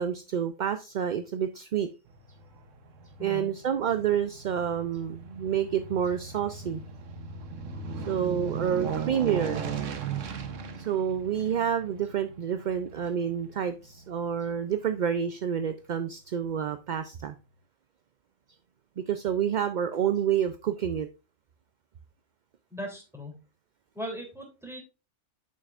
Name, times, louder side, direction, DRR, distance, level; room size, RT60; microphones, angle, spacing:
voice 1, 0.0-1.9 3.2-6.8 8.1-9.7 10.8-17.3 19.0-21.1, right 8 dB, 55° right, 10 dB, 0.5 m, -28 dB
Aircraft, 2.1-14.6 15.0-15.1, right 6 dB, 85° right, 1.3 m, -38 dB
voice 2, 22.7-23.3 23.9-24.8, equal, ahead, 1 dB, 3.2 m, -38 dB
8.8 x 6.5 x 2.4 m, 0.30 s
omnidirectional pair, 1.3 m